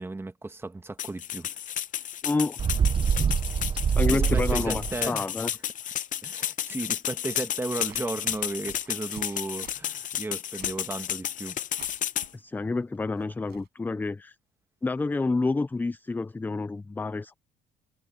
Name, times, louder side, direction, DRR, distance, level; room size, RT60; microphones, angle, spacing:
voice 1, 0.0-1.5 4.1-5.3 6.2-11.6, right 2 dB, 15° right, 1.5 m, -35 dB
sound 1, 1.0-12.3, left 10 dB, 50° left, 0.8 m, -32 dB
voice 2, 2.2-2.6 4.0-5.5 12.3-14.3 14.8-17.3, left 3 dB, 10° left, 0.4 m, -28 dB
Bird, 2.6-5.0, right 7 dB, 30° right, 0.8 m, -25 dB
sound 2, 7.6-13.7, right 15 dB, 80° right, 5.0 m, -53 dB
cardioid pair, 110°, 17 cm